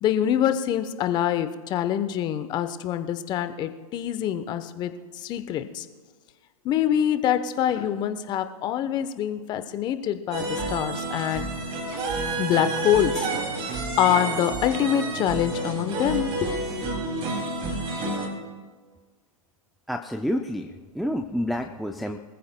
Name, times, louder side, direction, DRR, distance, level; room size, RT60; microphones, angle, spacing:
voice 1, 0.0-5.9 6.6-11.5 12.4-13.3 14.0-16.5, left 10 dB, 25° left, 10 dB, 0.8 m, -25 dB
sound 1, 10.3-18.3, right 2 dB, 25° right, 2.6 m, -29 dB
voice 2, 19.9-22.2, equal, ahead, 7 dB, 0.4 m, -29 dB
24.5 x 14.5 x 2.2 m, 1.4 s
hypercardioid pair, 130°, 19 cm